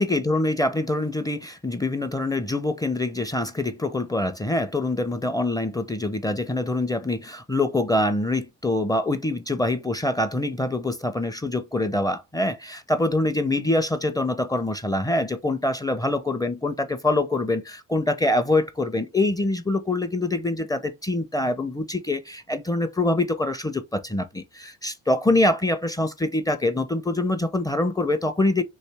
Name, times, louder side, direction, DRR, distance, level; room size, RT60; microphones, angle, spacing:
voice 1, 0.0-28.6, left 2 dB, 10° left, 0.5 m, -25 dB
3.2 x 2.5 x 3.3 m
supercardioid pair, 55°, 34 cm